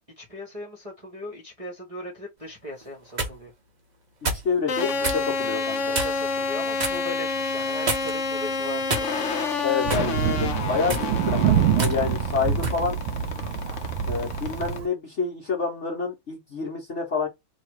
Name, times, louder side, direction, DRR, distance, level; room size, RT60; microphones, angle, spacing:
voice 1, 0.2-3.5 5.9-9.1, left 1 dB, 20° right, 1.1 m, -38 dB
sound 1, 2.8-3.4 4.2-4.5 5.0-5.2 5.9-6.3 6.8-7.0 7.9-8.3 8.9-9.4 9.9-10.1 10.8-11.1 11.8-12.0 12.6-12.8, right 2 dB, 45° right, 0.5 m, -28 dB
voice 2, 4.3-5.9 9.6-13.0 14.1-17.3, left 5 dB, 40° left, 1.3 m, -28 dB
sound 2, 4.7-14.8, left 4 dB, 70° left, 0.7 m, -29 dB
Thunder, 9.8-14.9, right 8 dB, 80° right, 1.4 m, -25 dB
3.2 x 3.1 x 4.5 m
omnidirectional pair, 2.3 m